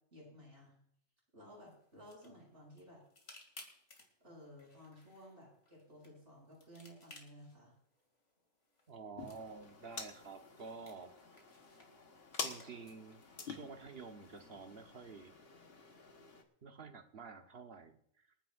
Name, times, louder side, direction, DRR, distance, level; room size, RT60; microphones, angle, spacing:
voice 1, 0.1-0.7 1.3-3.0 4.2-7.7, equal, 80° right, -4 dB, 7.2 m, -56 dB
sound 1, 1.5-14.5, left 2 dB, 85° left, 3.0 m, -62 dB
voice 2, 8.9-11.4 12.4-15.3 16.6-18.0, right 4 dB, 60° right, 6 dB, 1.3 m, -50 dB
sound 2, 9.2-16.4, left 4 dB, 60° left, 1.6 m, -48 dB
26.5 x 9.6 x 2.6 m, 0.68 s
omnidirectional pair, 1.2 m